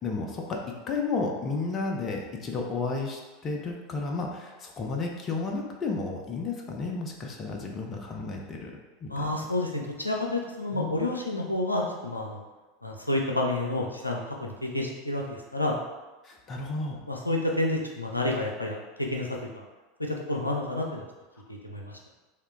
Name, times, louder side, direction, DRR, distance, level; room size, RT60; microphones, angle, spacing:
voice 1, 0.0-9.3 10.7-11.1 16.2-17.0, left 3 dB, 30° left, 0 dB, 0.6 m, -32 dB
voice 2, 9.1-12.4 12.8-15.8 17.1-19.3 19.5-19.6 20.0-21.0 21.5-22.1, left 1 dB, 85° left, 0 dB, 0.5 m, -29 dB
3.3 x 2.8 x 3.4 m, 1.2 s
figure-of-eight pair, 80°, 0 cm